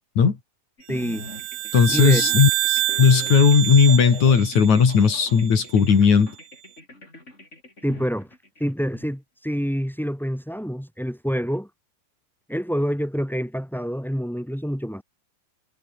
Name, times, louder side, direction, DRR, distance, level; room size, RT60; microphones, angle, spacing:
sound 1, 0.8-9.1, left 1 dB, 20° left, 7.0 m, -43 dB
voice 1, 0.9-1.3 1.9-2.2 7.8-8.3 8.6-11.7 12.5-15.0, equal, ahead, 2.7 m, -27 dB
sound 2, 1.0-5.5, right 15 dB, 70° right, 1.8 m, -27 dB
voice 2, 1.7-6.3, left 6 dB, 70° left, 4.7 m, -17 dB
omnidirectional pair, 3.4 m